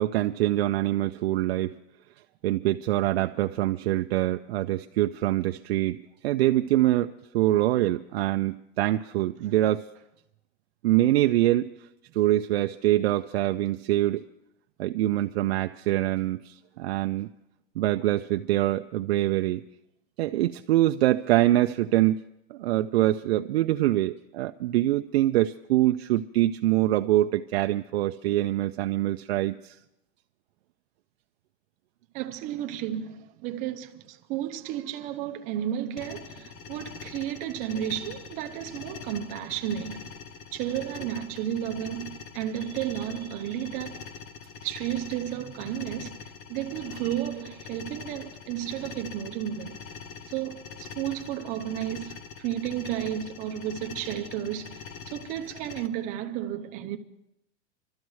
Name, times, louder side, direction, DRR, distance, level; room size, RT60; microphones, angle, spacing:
voice 1, 0.0-1.8 2.4-9.9 10.8-11.7 12.1-14.2 14.8-17.3 17.8-19.6 20.2-22.2 22.5-29.8, right 15 dB, 65° right, 0.5 m, -24 dB
voice 2, 32.1-40.1 40.5-44.1 44.6-49.8 50.3-57.0, right 11 dB, 25° right, 0.6 m, -33 dB
sound 1, 36.0-55.9, left 6 dB, 20° left, 0.5 m, -43 dB
26.0 x 13.0 x 3.2 m
supercardioid pair, 170°, 34 cm